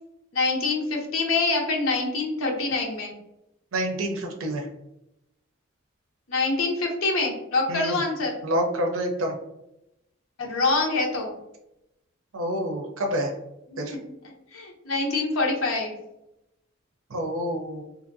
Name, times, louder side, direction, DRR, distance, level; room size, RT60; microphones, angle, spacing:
voice 1, 0.3-3.1 6.3-8.3 10.4-11.3 13.7-13.8 14.5-15.9, left 3 dB, 80° left, 0 dB, 0.7 m, -25 dB
voice 2, 3.7-4.7 7.7-8.0 8.4-9.4 12.3-13.3 13.8-14.0 17.1-17.8, equal, 75° right, 3 dB, 0.5 m, -27 dB
2.8 x 2.5 x 2.6 m, 0.88 s
head